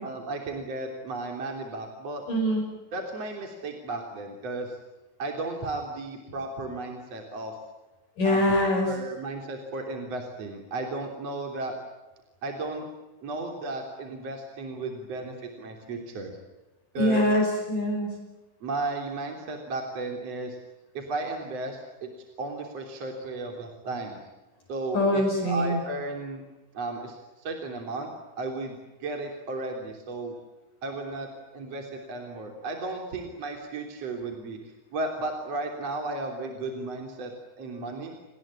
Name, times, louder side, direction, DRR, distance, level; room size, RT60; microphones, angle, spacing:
voice 1, 0.0-2.2 2.9-4.8 5.2-7.5 8.2-11.8 12.4-12.8 13.2-16.3 16.9-17.3 18.6-20.6 20.9-22.1 22.4-24.2 24.7-26.4 26.7-28.1 28.4-30.3 30.8-34.6 34.9-37.3 37.6-38.1, right 2 dB, 40° right, 3 dB, 3.9 m, -34 dB
voice 2, 2.3-2.6 8.2-8.9 17.0-18.2 24.9-25.8, left 1 dB, 50° left, 2 dB, 6.6 m, -23 dB
29.5 x 20.0 x 9.9 m, 1.1 s
omnidirectional pair, 5.1 m